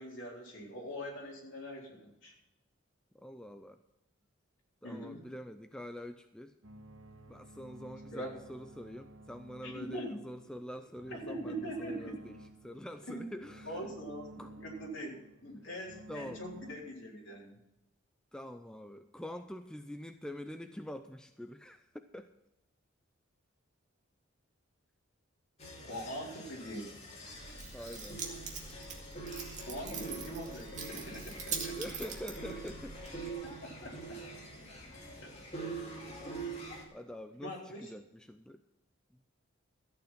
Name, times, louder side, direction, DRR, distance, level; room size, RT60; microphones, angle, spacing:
voice 1, 0.0-2.3 4.8-5.3 8.1-8.3 9.6-10.2 11.1-12.1 13.1-13.3 13.6-15.2 15.4-17.5 25.8-27.0 29.7-31.8 33.4-34.2 35.2-35.3 37.4-37.9, equal, 60° left, -3 dB, 4.1 m, -43 dB
voice 2, 3.1-3.8 4.8-6.5 7.3-13.8 14.4-14.5 16.1-16.4 18.3-22.3 27.7-28.2 31.7-33.3 36.9-38.6, equal, 5° left, 7 dB, 0.4 m, -45 dB
sound 1, 6.6-16.8, right 1 dB, 80° right, 1.5 m, -53 dB
sound 2, 25.6-36.8, right 3 dB, 30° left, 2.4 m, -44 dB
Keys jangling, 27.3-33.3, right 5 dB, 35° right, 2.1 m, -43 dB
14.0 x 8.8 x 5.9 m, 0.89 s
head